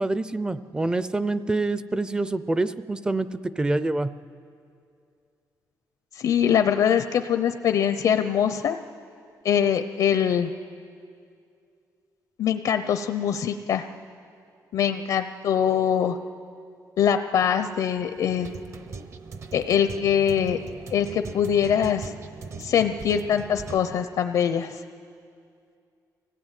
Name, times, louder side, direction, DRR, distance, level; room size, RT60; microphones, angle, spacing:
voice 1, 0.0-4.1, right 2 dB, 10° right, 14 dB, 0.5 m, -26 dB
voice 2, 6.1-8.8 9.4-10.5 12.4-13.8 14.7-16.2 17.0-18.5 19.5-20.6 20.9-22.1 22.6-24.8, left 8 dB, 75° left, 8 dB, 0.7 m, -23 dB
sound 1, 17.6-23.8, right 5 dB, 45° right, 0.8 m, -40 dB
24.0 x 16.0 x 9.1 m, 2.4 s
wide cardioid pair, 180°, 7 cm